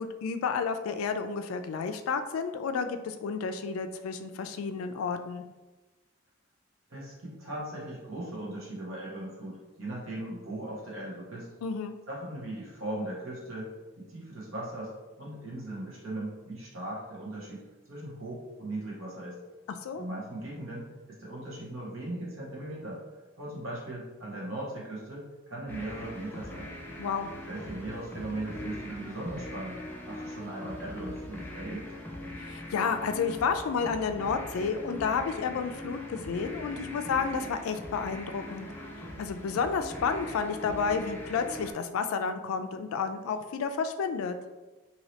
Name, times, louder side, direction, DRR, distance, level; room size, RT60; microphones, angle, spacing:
voice 1, 0.0-5.4 11.6-11.9 19.7-20.1 27.0-27.3 32.4-38.7 39.2-44.3, left 5 dB, 85° left, 8 dB, 0.3 m, -31 dB
voice 2, 6.9-11.5 12.1-19.4 19.9-23.0 23.4-26.7 27.5-29.8 30.1-31.8, right 1 dB, 75° right, -4 dB, 1.1 m, -38 dB
sound 1, 25.7-41.7, left 1 dB, 10° left, 0.4 m, -41 dB
2.8 x 2.8 x 3.1 m, 1.2 s
head